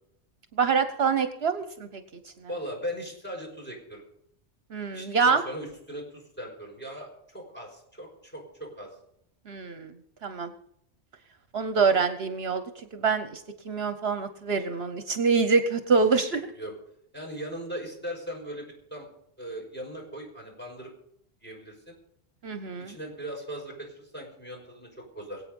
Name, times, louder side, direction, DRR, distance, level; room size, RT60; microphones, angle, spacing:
voice 1, 0.5-2.3 4.7-5.4 9.5-9.9 10.2-10.5 11.5-16.5 22.4-23.0, right 5 dB, 65° right, 10 dB, 1.2 m, -26 dB
voice 2, 2.5-4.0 4.9-8.9 16.4-16.7 17.1-19.1 19.4-20.9 21.4-22.0 22.9-25.4, equal, 10° left, -1 dB, 5.6 m, -39 dB
22.0 x 8.7 x 5.3 m, 0.73 s
omnidirectional pair, 1.1 m